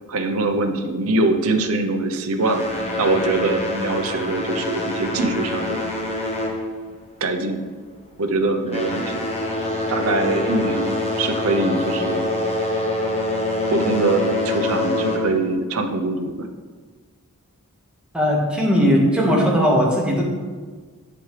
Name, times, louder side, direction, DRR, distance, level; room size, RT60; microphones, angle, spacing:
voice 1, 0.1-5.8 7.2-7.6 8.2-9.3 9.9-12.3 13.7-16.5, right 2 dB, 70° right, 6 dB, 0.8 m, -23 dB
sound 1, 2.4-7.3 7.6-7.9 8.5-15.6, left 2 dB, 30° left, 1.1 m, -25 dB
voice 2, 18.1-20.2, equal, 5° right, -4 dB, 1.6 m, -18 dB
8.2 x 7.6 x 3.3 m, 1.5 s
head